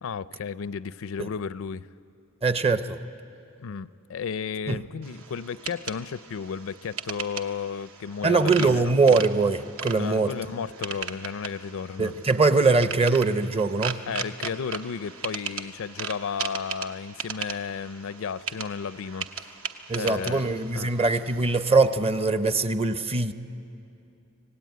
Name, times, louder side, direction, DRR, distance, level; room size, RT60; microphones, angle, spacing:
voice 1, 0.0-1.9 3.6-8.9 10.0-12.1 14.1-19.5 20.0-20.9, left 6 dB, 65° left, 16 dB, 0.5 m, -33 dB
voice 2, 2.4-3.0 4.7-4.8 8.2-10.3 12.0-14.0 19.9-23.3, right 3 dB, 25° right, 11 dB, 0.7 m, -22 dB
sound 1, 5.0-21.8, right 6 dB, 70° right, 1.0 m, -38 dB
25.5 x 17.5 x 9.3 m, 2.7 s
head